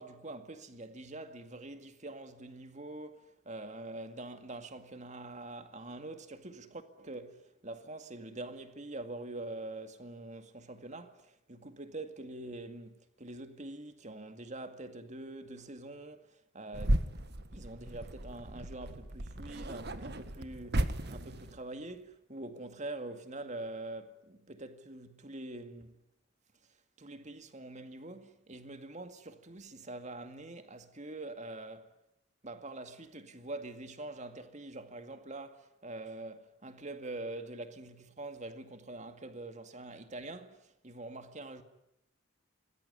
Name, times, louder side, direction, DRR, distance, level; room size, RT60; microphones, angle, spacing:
voice 1, 0.0-17.1 17.5-26.0 27.0-31.9 32.4-41.6, right 2 dB, 35° right, 2.2 m, -45 dB
sound 1, 16.7-21.6, right 1 dB, 55° right, 1.7 m, -35 dB
26.0 x 20.0 x 10.0 m
head